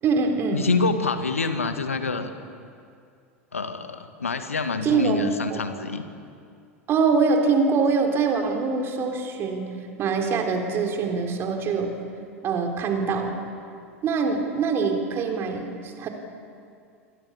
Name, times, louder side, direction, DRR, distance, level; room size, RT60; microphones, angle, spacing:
voice 1, 0.0-0.6 4.8-5.8 6.9-9.7 10.0-11.9 12.4-13.3 14.0-16.1, right 4 dB, 35° right, 4 dB, 3.8 m, -24 dB
voice 2, 0.5-2.3 3.5-6.1, left 4 dB, 75° left, 9 dB, 1.7 m, -26 dB
29.0 x 23.0 x 7.3 m, 2.3 s
figure-of-eight pair, 85°, 7 cm